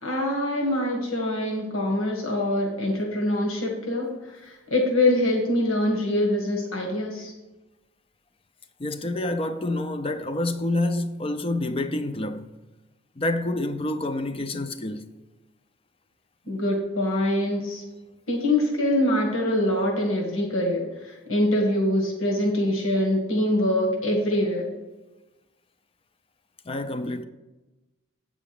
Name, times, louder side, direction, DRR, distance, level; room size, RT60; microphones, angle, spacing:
voice 1, 0.0-7.3 16.5-17.8 18.3-24.6, left 1 dB, 90° left, 1.8 m, -24 dB
voice 2, 8.8-12.5 13.2-15.1 26.7-27.2, left 2 dB, 25° left, 0.5 m, -28 dB
8.5 x 5.0 x 7.0 m
head